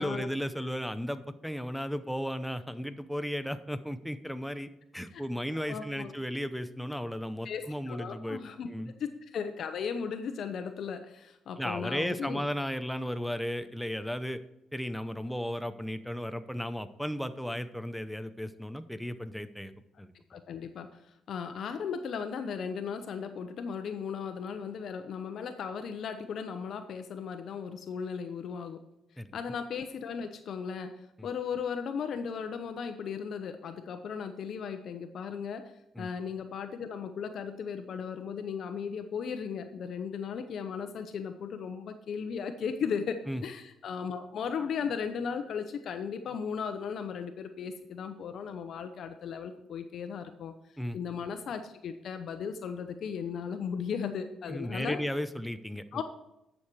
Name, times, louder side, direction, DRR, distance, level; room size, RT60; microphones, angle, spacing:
voice 1, 0.0-8.4 8.7-8.9 11.6-14.4 14.7-19.7 20.0-20.1 29.2-29.4 31.2-31.3 36.0-36.1 43.3-43.4 50.8-51.0 54.5-56.0, equal, ahead, 10 dB, 0.7 m, -35 dB
voice 2, 5.7-6.1 7.4-8.7 9.0-12.4 20.3-20.9 21.3-28.8 29.3-35.7 36.0-50.5 50.9-55.0 55.9-56.0, left 6 dB, 65° left, 8 dB, 0.8 m, -36 dB
10.5 x 6.6 x 4.7 m, 0.88 s
cardioid pair, 90°, 0 cm